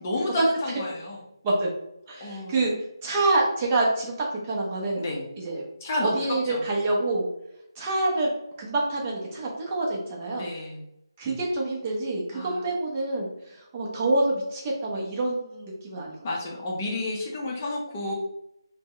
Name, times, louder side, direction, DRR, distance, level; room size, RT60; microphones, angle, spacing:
voice 1, 0.0-1.2 2.2-2.6 4.9-5.3 5.8-6.6 10.3-10.8 12.3-12.6 16.2-18.1, left 2 dB, 25° left, -2 dB, 0.6 m, -31 dB
voice 2, 2.1-2.7 3.0-5.0 5.4-5.6 6.0-7.3 7.8-8.3 8.6-10.5 11.2-16.2, right 2 dB, 20° right, -2 dB, 0.6 m, -26 dB
2.8 x 2.1 x 3.7 m, 0.81 s
figure-of-eight pair, 170°, 2 cm